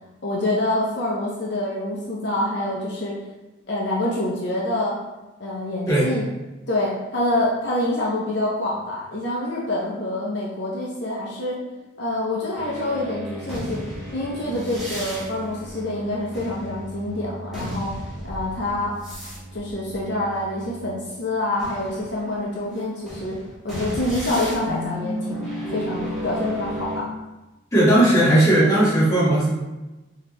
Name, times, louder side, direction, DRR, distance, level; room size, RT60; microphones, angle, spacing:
voice 1, 0.2-3.1 3.7-4.9 5.4-6.3 6.7-11.6 12.0-13.8 14.1-17.9 18.2-18.9 19.5-23.3 23.6-27.0, left 1 dB, 60° left, -5 dB, 0.8 m, -26 dB
sound 1, 12.5-21.0 21.5-27.0, equal, ahead, 1.4 m, -34 dB
voice 2, 27.7-29.5, right 1 dB, 15° left, -9 dB, 1.5 m, -17 dB
4.9 x 2.9 x 3.1 m, 1.1 s
head